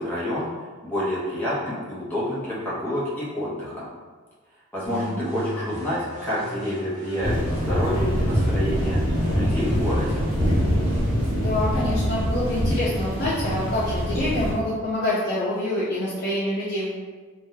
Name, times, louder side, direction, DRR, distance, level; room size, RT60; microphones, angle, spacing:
voice 1, 0.0-3.9 4.7-10.2, left 1 dB, 10° left, -9 dB, 0.7 m, -29 dB
sound 1, 4.8-7.9 8.3-11.3, equal, 35° right, 0.7 m, -36 dB
voice 2, 4.9-5.3 11.3-16.9, left 1 dB, 60° left, -10 dB, 0.6 m, -26 dB
sound 2, 7.2-14.5, equal, 60° right, 1.2 m, -24 dB
3.2 x 2.2 x 2.7 m, 1.4 s
head